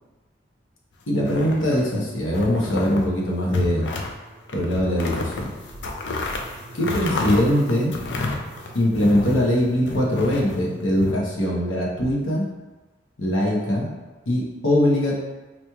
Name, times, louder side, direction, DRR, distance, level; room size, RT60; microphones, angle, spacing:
voice 1, 1.1-3.9 4.5-5.5 6.7-7.9 8.7-12.4 13.2-13.9 14.3-15.2, equal, 90° left, -3 dB, 0.9 m, -22 dB
sound 1, 1.2-1.9 2.3-3.1 3.4-4.1 4.5-9.5 9.8-11.1, left 2 dB, 65° left, 0.4 m, -30 dB
sound 2, 3.1-11.0, right 1 dB, 50° right, 0.5 m, -43 dB
4.2 x 3.0 x 2.3 m, 1.2 s
head